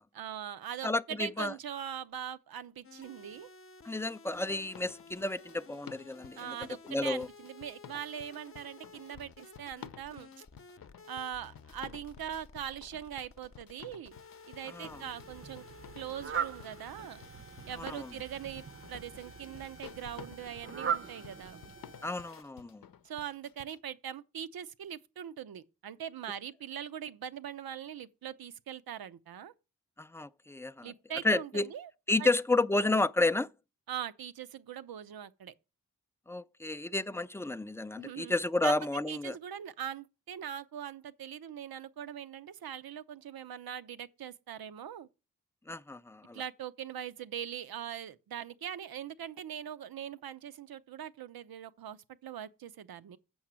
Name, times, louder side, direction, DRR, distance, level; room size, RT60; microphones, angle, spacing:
voice 1, 0.2-3.5 6.4-10.3 11.1-14.2 14.5-15.6 15.9-17.2 17.7-21.6 23.0-29.5 30.8-31.9 32.2-32.3 33.9-35.5 38.0-38.4 38.6-38.7 39.1-45.1 46.3-53.2, right 9 dB, 80° right, 0.7 m, -41 dB
voice 2, 0.8-1.5 3.8-6.6 6.9-7.3 14.7-15.0 17.8-18.1 22.0-22.8 30.0-30.9 31.2-31.7 32.1-33.5 36.3-39.4 45.7-46.4, left 2 dB, 10° left, 0.4 m, -31 dB
sound 1, 2.8-22.4, left 3 dB, 35° left, 0.7 m, -54 dB
sound 2, 4.3-23.8, left 9 dB, 70° left, 0.7 m, -53 dB
Fowl, 14.8-22.1, right 7 dB, 40° right, 0.7 m, -41 dB
7.1 x 5.8 x 7.4 m
cardioid pair, 60°, 35 cm